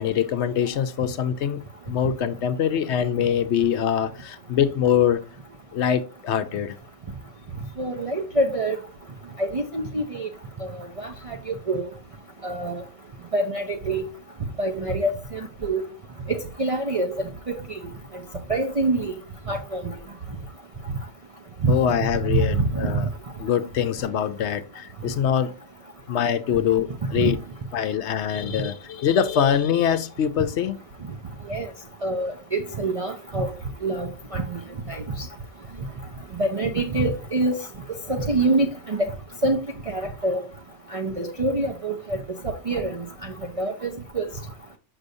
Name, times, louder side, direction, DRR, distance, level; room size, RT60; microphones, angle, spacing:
voice 1, 0.0-5.2 5.7-6.8 21.7-23.1 23.4-25.6 26.1-27.4 27.7-30.8, left 9 dB, 65° left, 0.8 m, -24 dB
voice 2, 7.8-8.8 9.4-10.3 11.0-11.1 11.5-11.9 12.4-12.8 13.3-14.0 14.6-15.8 16.3-17.6 18.5-19.1 19.5-19.9 21.6-21.7 22.5-23.0 27.2-27.3 31.5-31.7 32.0-33.5 33.8-34.6 34.9-35.0 36.4-37.6 38.1-39.1 39.4-39.6 39.9-40.4 40.9-42.2 42.4-44.3, right 2 dB, 35° right, 0.6 m, -25 dB
6.5 x 6.1 x 2.6 m
omnidirectional pair, 1.3 m